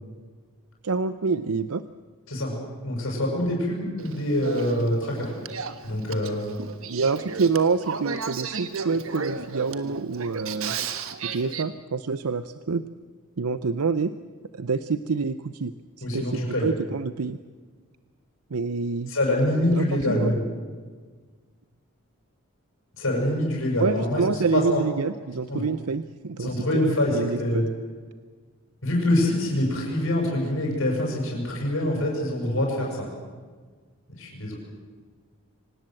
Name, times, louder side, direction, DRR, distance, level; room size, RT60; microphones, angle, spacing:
voice 1, 0.8-1.8 6.9-10.8 11.2-12.8 13.4-14.1 14.5-17.4 18.5-19.1 19.7-20.3 23.8-27.6, right 4 dB, 90° right, 12 dB, 0.7 m, -27 dB
voice 2, 2.8-5.3 5.8-6.5 16.0-16.7 19.1-20.5 23.0-24.2 24.5-24.8 25.5-25.6 26.4-27.7 28.8-33.1 34.2-34.5, left 1 dB, 65° left, -1 dB, 7.1 m, -25 dB
Male speech man speaking / Female speech woman speaking / Conversation, 4.0-11.6, right 5 dB, 65° right, 1.4 m, -35 dB
25.0 x 18.5 x 7.7 m, 1.5 s
head